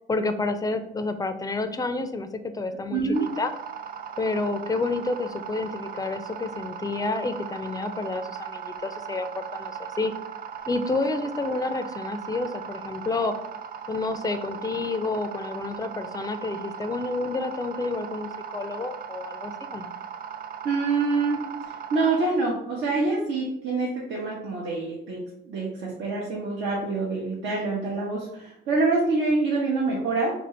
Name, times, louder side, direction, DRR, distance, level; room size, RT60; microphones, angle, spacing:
voice 1, 0.1-3.5 4.2-10.1 10.7-13.3 13.9-19.9, left 3 dB, 20° left, 9 dB, 0.4 m, -29 dB
voice 2, 2.9-3.3 20.6-30.3, right 3 dB, 75° right, -5 dB, 0.9 m, -26 dB
sound 1, 3.1-22.3, right 8 dB, 50° right, 0.4 m, -38 dB
2.8 x 2.6 x 4.3 m, 0.77 s
cardioid pair, 90°, 20 cm